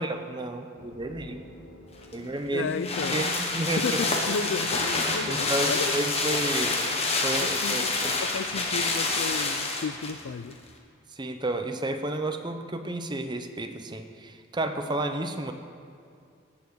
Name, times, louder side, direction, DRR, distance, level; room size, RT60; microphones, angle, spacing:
voice 1, 0.0-1.4 2.1-2.7 3.1-3.3 3.5-4.0 5.3-6.8 7.2-8.1 11.1-15.5, right 1 dB, 20° right, 6 dB, 0.7 m, -31 dB
sound 1, 0.8-8.5, left 1 dB, 85° left, 1.2 m, -44 dB
sound 2, 2.0-10.2 10.5-10.6, left 3 dB, 30° left, 1.2 m, -27 dB
voice 2, 2.5-3.2 3.8-5.9 7.4-10.6, left 5 dB, 65° left, 14 dB, 0.4 m, -33 dB
17.5 x 7.1 x 4.7 m, 2.4 s
head